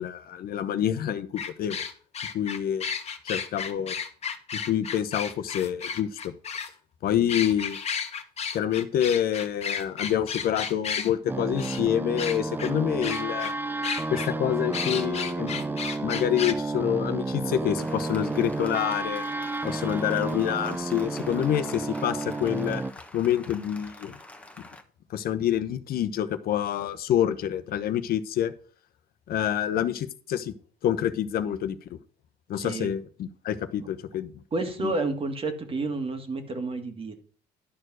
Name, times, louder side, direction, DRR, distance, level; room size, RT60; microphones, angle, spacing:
voice 1, 0.0-1.8 2.3-2.9 3.2-4.0 4.7-6.3 7.0-7.8 8.5-13.5 14.1-15.6 16.0-19.2 19.6-22.8 23.1-24.2 25.1-28.5 29.3-30.5 30.8-32.0 32.5-34.3 34.8-34.9, left 10 dB, 65° left, 11 dB, 0.9 m, -27 dB
sound 1, 1.4-6.7 7.3-11.1 11.6-11.8 12.2-12.7 13.0-13.5 13.8-14.3 14.7-16.5, left 6 dB, 40° left, 1.3 m, -32 dB
sound 2, 11.3-22.9, right 2 dB, 10° right, 0.5 m, -31 dB
Applause, 17.8-24.8, left 2 dB, 10° left, 1.2 m, -46 dB
voice 2, 32.6-32.9 34.5-37.2, right 3 dB, 35° right, 6 dB, 1.9 m, -30 dB
11.5 x 4.6 x 6.2 m, 0.43 s
cardioid pair, 110°, 17 cm